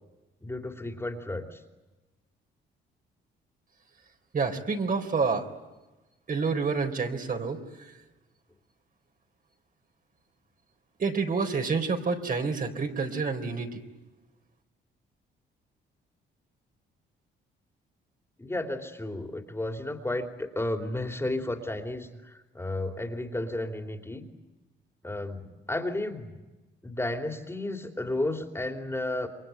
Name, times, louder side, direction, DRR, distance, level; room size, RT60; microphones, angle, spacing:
voice 1, 0.4-1.6 18.4-24.2 25.0-26.3 26.8-29.3, left 1 dB, 10° left, 5 dB, 3.3 m, -33 dB
voice 2, 4.3-5.5 6.3-7.6 11.0-13.8, right 4 dB, 45° right, 5 dB, 4.0 m, -28 dB
28.0 x 23.0 x 9.3 m, 1.1 s
cardioid pair, 90°, 20 cm